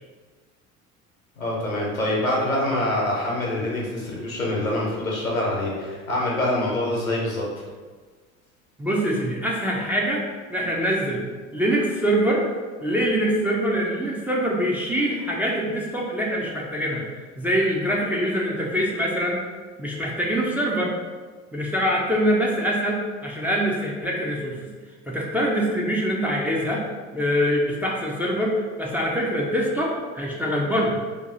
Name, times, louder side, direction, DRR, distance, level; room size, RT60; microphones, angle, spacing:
voice 1, 1.4-7.4, left 1 dB, 90° left, -4 dB, 0.9 m, -25 dB
voice 2, 8.8-10.2 10.5-11.2 11.5-12.4 12.8-17.0 17.4-19.4 19.8-20.9 21.5-24.6 25.1-26.8 27.1-31.0, equal, 5° right, -4 dB, 0.4 m, -24 dB
2.7 x 2.5 x 3.8 m, 1.4 s
figure-of-eight pair, 65°, 40 cm